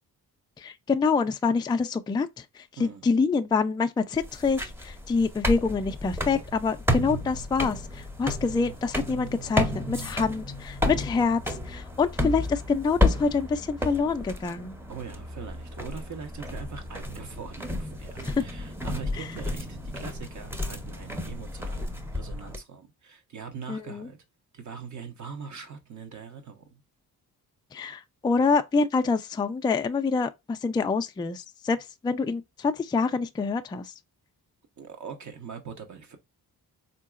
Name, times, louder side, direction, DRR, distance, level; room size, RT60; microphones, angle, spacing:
voice 1, 0.6-14.8 18.2-18.5 23.7-24.1 27.7-31.8 32.0-33.9, left 4 dB, 10° left, 0.3 m, -26 dB
sound 1, 4.1-22.6, left 1 dB, 5° right, 0.7 m, -32 dB
voice 2, 14.9-24.2 24.5-26.8 34.8-36.2, right 6 dB, 50° right, 1.0 m, -42 dB
3.8 x 2.8 x 2.4 m
cardioid pair, 70°, 38 cm